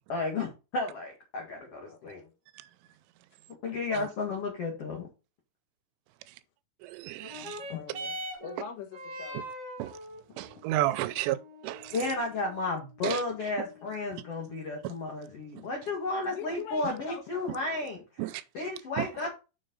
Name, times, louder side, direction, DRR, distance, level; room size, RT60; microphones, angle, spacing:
voice 1, 0.1-2.2 3.6-5.1 7.7-7.8 11.9-19.3, left 3 dB, 65° left, 1.5 m, -33 dB
voice 2, 1.9-2.4 3.7-3.8 7.4-9.4 16.2-17.5, left 8 dB, 90° left, 3.9 m, -44 dB
voice 3, 6.9-7.6 9.8-9.9 10.4-11.4 11.6-11.9 13.0-13.2 18.2-18.4 19.0-19.1, right 15 dB, 85° right, 3.0 m, -31 dB
sound 1, 7.1-16.1 16.9-17.0, right 1 dB, 40° right, 2.4 m, -44 dB
7.2 x 6.7 x 3.9 m
omnidirectional pair, 5.6 m